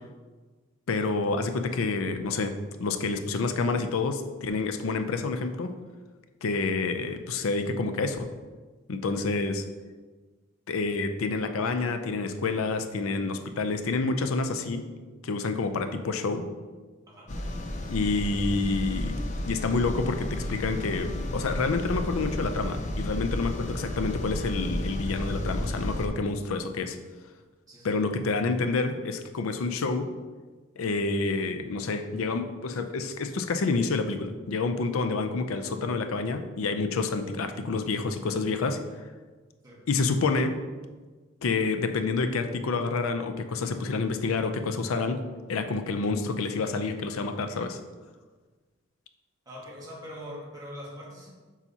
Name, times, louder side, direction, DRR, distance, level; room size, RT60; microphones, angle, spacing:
voice 1, 0.9-2.5 2.8-5.7 6.4-8.3 8.9-9.6 10.7-14.8 15.2-16.5 17.9-19.2 19.5-27.0 27.8-30.1 30.8-38.8 39.9-40.6 41.4-45.2 45.5-47.8, left 3 dB, 85° left, 8 dB, 0.5 m, -28 dB
sound 1, 17.3-26.1, left 1 dB, 35° left, 0.5 m, -32 dB
voice 2, 27.7-28.0 39.6-39.8 49.4-51.3, equal, 15° right, -5 dB, 1.4 m, -43 dB
7.1 x 5.5 x 2.8 m, 1.3 s
head